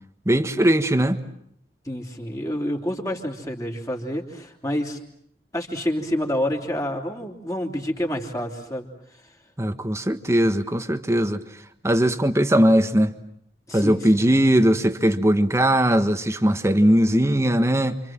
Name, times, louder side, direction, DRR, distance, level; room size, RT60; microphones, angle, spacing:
voice 1, 0.2-1.2 9.6-11.4 11.8-13.1 13.7-18.0, right 1 dB, 15° right, 1.5 m, -19 dB
voice 2, 1.8-5.0 5.5-8.9 13.7-14.2, left 1 dB, 20° left, 3.4 m, -28 dB
28.5 x 26.5 x 7.6 m
head